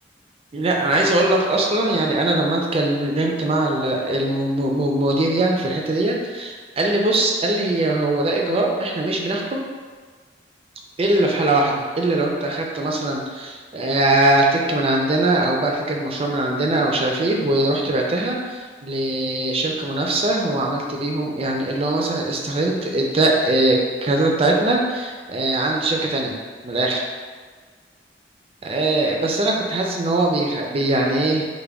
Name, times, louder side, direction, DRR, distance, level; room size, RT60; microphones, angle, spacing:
voice 1, 0.5-9.6 11.0-26.4 26.6-27.0 28.6-31.5, right 2 dB, 35° right, 0 dB, 0.4 m, -21 dB
3.3 x 2.2 x 3.5 m, 1.5 s
head